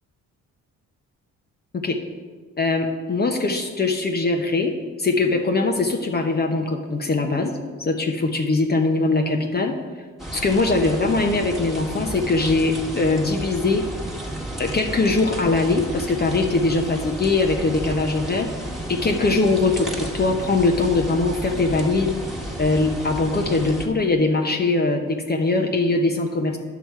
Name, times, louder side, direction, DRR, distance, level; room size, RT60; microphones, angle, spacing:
voice 1, 2.6-7.5 7.8-9.8 10.3-13.8 14.6-18.5 18.9-22.2 22.6-26.6, left 3 dB, 35° left, 3 dB, 1.0 m, -21 dB
sound 1, 10.2-23.9, right 1 dB, ahead, 1.7 m, -32 dB
10.5 x 6.1 x 4.7 m, 1.5 s
cardioid pair, 90°, 30 cm